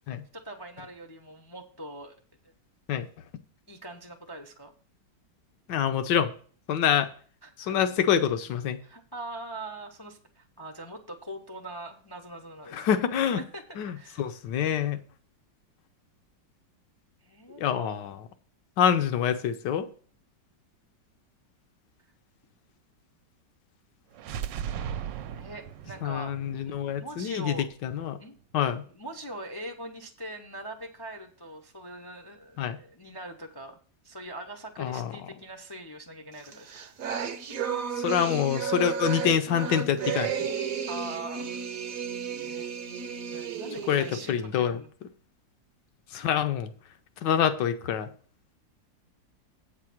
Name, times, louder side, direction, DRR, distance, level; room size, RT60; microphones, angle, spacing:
voice 1, 0.3-2.1 3.7-4.7 7.4-7.9 8.8-12.9 13.3-13.6 13.9-14.2 17.2-17.9 25.4-27.7 28.2-33.8 34.0-36.7 40.9-41.6 42.4-42.7 43.3-44.9, right 1 dB, 35° left, 0.3 m, -42 dB
voice 2, 5.7-6.3 6.7-7.1 7.6-8.8 12.7-13.4 13.8-15.0 17.6-18.2 18.8-19.9 26.0-27.5 27.8-28.2 28.5-28.8 32.6-32.8 34.8-35.1 38.0-40.3 43.9-44.8 46.1-46.7 47.2-48.1, left 9 dB, 75° left, 1.4 m, -26 dB
sound 1, 24.1-28.0, right 9 dB, 80° right, 1.3 m, -38 dB
sound 2, 36.4-44.3, right 7 dB, 55° right, 1.1 m, -33 dB
8.4 x 4.8 x 7.2 m
omnidirectional pair, 2.0 m